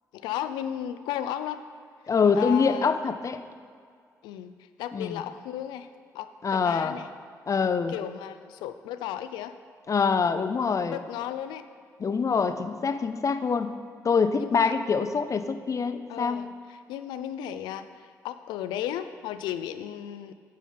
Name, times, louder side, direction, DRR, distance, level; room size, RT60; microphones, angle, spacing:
voice 1, 0.1-1.6 2.4-2.9 4.2-4.5 4.8-5.9 6.1-7.1 7.6-9.5 10.9-11.7 14.4-14.7 16.1-20.3, left 11 dB, 90° left, 11 dB, 0.4 m, -35 dB
voice 2, 2.1-3.4 4.9-5.2 6.4-6.9 7.5-7.9 9.9-11.0 12.0-13.7 14.0-16.5, left 5 dB, 45° left, 10 dB, 0.6 m, -25 dB
9.3 x 4.9 x 5.7 m, 2.1 s
supercardioid pair, 50°, 7 cm